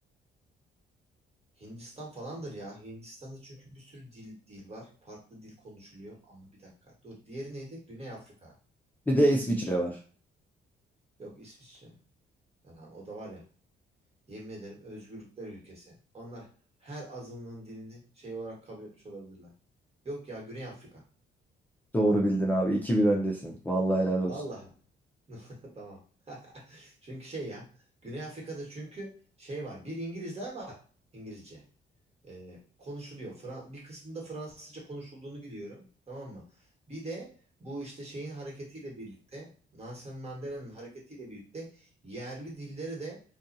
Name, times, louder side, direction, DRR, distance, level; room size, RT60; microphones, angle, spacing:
voice 1, 1.6-8.5 11.2-11.9 12.6-13.5 14.3-16.5 16.8-19.5 20.0-21.0 24.2-24.7 25.3-26.0 26.3-27.7 28.0-30.8 31.1-31.6 32.2-36.5 36.9-37.3 37.6-43.2, right 1 dB, 30° right, -3 dB, 1.4 m, -42 dB
voice 2, 9.1-10.0 21.9-24.3, right 1 dB, 10° left, -2 dB, 0.5 m, -25 dB
2.5 x 2.3 x 2.6 m, 0.41 s
cardioid pair, 90°, 20 cm